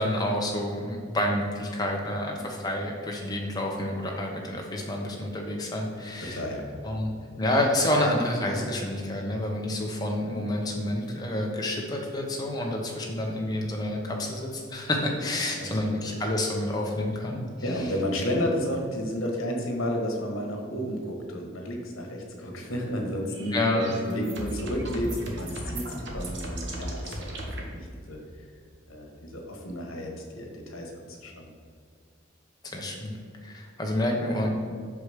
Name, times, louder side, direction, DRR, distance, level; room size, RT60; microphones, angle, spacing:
voice 1, 0.0-6.4 6.8-7.1 7.4-17.4 23.5-23.8 32.6-33.1 33.4-34.5, left 1 dB, 20° left, -1 dB, 0.9 m, -28 dB
voice 2, 6.2-6.6 15.6-15.9 17.6-28.5 28.9-31.5, equal, 85° left, 2 dB, 1.3 m, -32 dB
sound 1, 23.3-27.6, right 1 dB, 60° right, 1.1 m, -36 dB
6.0 x 5.0 x 4.9 m, 2.2 s
head